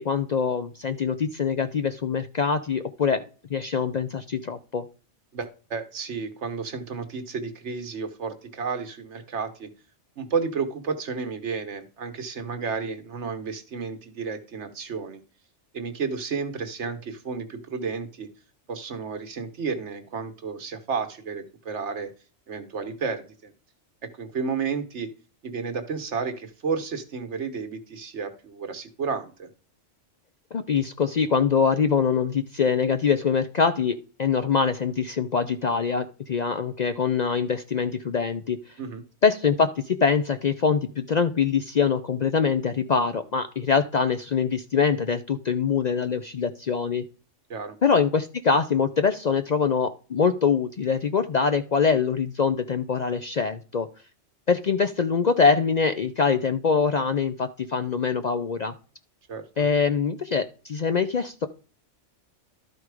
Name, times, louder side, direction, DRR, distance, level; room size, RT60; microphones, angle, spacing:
voice 1, 0.0-3.2 3.5-4.9 30.5-38.6 39.2-47.0 47.8-53.9 54.5-58.7 59.6-61.5, left 6 dB, 50° left, 9 dB, 0.5 m, -24 dB
voice 2, 5.3-9.7 10.2-15.2 15.7-18.3 18.7-22.1 22.5-23.5 24.2-25.1 25.4-29.5 38.8-39.0 47.5-47.8 59.3-59.4, right 5 dB, 70° right, 9 dB, 1.4 m, -32 dB
12.0 x 4.6 x 4.8 m, 0.37 s
omnidirectional pair, 1.2 m